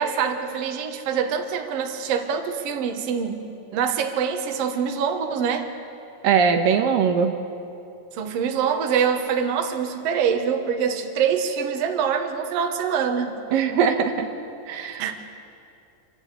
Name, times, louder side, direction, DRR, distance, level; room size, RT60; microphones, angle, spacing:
voice 1, 0.0-3.4 3.7-5.7 8.1-13.4 15.0-15.1, right 7 dB, 55° right, 5 dB, 2.0 m, -25 dB
voice 2, 6.2-7.4 13.5-14.3 14.7-15.0, right 6 dB, 80° right, 5 dB, 2.8 m, -20 dB
27.5 x 11.5 x 8.3 m, 2.7 s
omnidirectional pair, 4.0 m